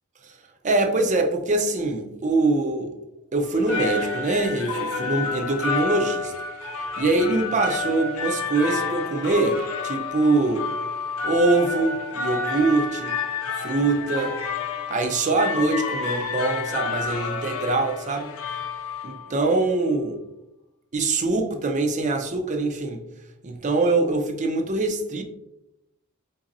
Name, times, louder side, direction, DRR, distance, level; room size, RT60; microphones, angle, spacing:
voice 1, 0.6-3.0 3.3-6.3 7.0-10.7 11.2-13.2 13.6-14.4 14.9-18.3 19.0-20.2 20.9-23.0 23.4-25.2, right 3 dB, 35° right, 6 dB, 0.5 m, -23 dB
sound 1, 3.5-19.3, left 4 dB, 70° left, 0.6 m, -30 dB
4.0 x 3.7 x 2.6 m, 0.86 s
head